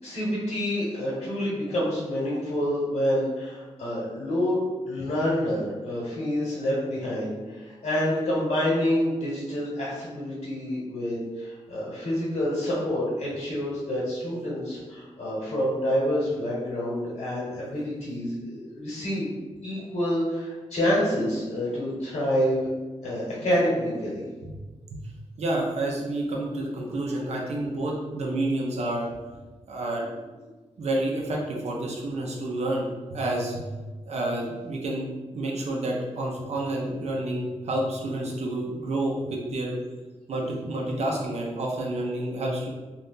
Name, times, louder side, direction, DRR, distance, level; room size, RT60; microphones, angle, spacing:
voice 1, 0.0-4.6 4.9-19.3 19.6-22.7 23.0-24.2, equal, 75° left, -8 dB, 1.1 m, -27 dB
voice 2, 25.4-29.1 29.7-30.3 30.8-33.7 34.1-39.8 40.3-42.7, right 1 dB, 65° right, -1 dB, 0.6 m, -29 dB
2.7 x 2.4 x 3.6 m, 1.3 s
wide cardioid pair, 170°, 12 cm